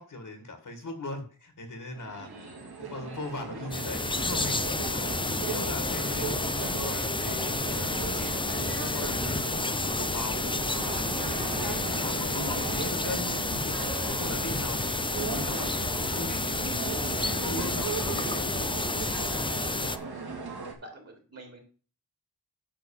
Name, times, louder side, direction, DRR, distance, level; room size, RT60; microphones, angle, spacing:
voice 1, 0.0-2.5 2.8-14.8 15.1-18.0, left 2 dB, 55° left, 6 dB, 2.1 m, -40 dB
sound 1, 1.9-20.7, right 4 dB, 75° right, 2.3 m, -37 dB
voice 2, 2.2-2.6 9.8-10.2 11.5-12.5 14.2-14.6 20.7-21.6, right 1 dB, 40° right, 2 dB, 3.5 m, -48 dB
sound 2, 3.7-20.0, left 2 dB, 15° left, 0.5 m, -30 dB
9.4 x 3.9 x 7.2 m, 0.38 s
wide cardioid pair, 115°, 38 cm